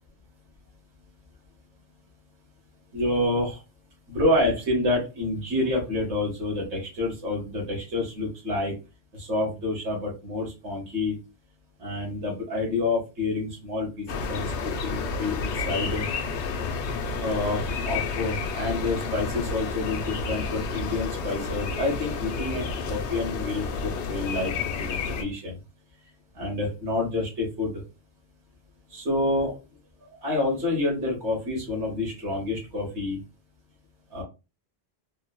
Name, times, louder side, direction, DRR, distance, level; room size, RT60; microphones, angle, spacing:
voice 1, 2.9-3.6 4.1-8.7 9.1-11.1 11.8-16.0 17.2-24.5 24.8-25.6 26.3-27.8 28.9-29.5 30.2-33.2 34.1-34.2, left 2 dB, 80° right, -2 dB, 1.2 m, -28 dB
sound 1, 14.1-25.2, left 4 dB, 85° left, 0.9 m, -30 dB
3.2 x 2.0 x 2.2 m, 0.28 s
omnidirectional pair, 1.1 m